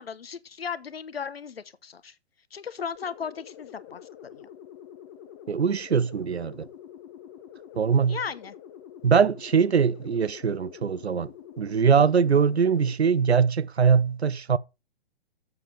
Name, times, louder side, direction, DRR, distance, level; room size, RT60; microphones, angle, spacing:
voice 1, 0.0-2.1 2.5-4.0 4.3-4.5 8.1-8.5, left 6 dB, 65° left, 1.0 m, -36 dB
sound 1, 2.9-13.0, left 10 dB, 20° left, 0.7 m, -46 dB
voice 2, 5.5-6.7 7.8-8.2 9.0-11.3 11.6-14.6, right 6 dB, 80° right, 0.6 m, -22 dB
7.6 x 7.3 x 4.8 m
figure-of-eight pair, 125°, 32 cm